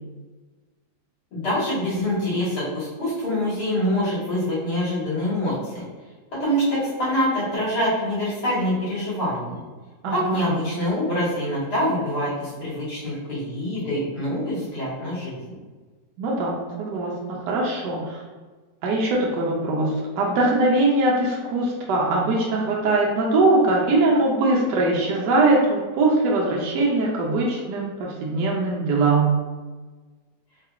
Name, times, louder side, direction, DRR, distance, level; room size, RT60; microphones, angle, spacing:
voice 1, 1.3-5.8 6.4-9.6 10.1-15.4, equal, 65° left, -10 dB, 2.2 m, -25 dB
voice 2, 10.0-10.5 16.2-17.1 17.5-18.2 18.8-29.3, right 2 dB, 75° right, -3 dB, 1.2 m, -21 dB
4.0 x 2.8 x 2.4 m, 1.3 s
omnidirectional pair, 1.9 m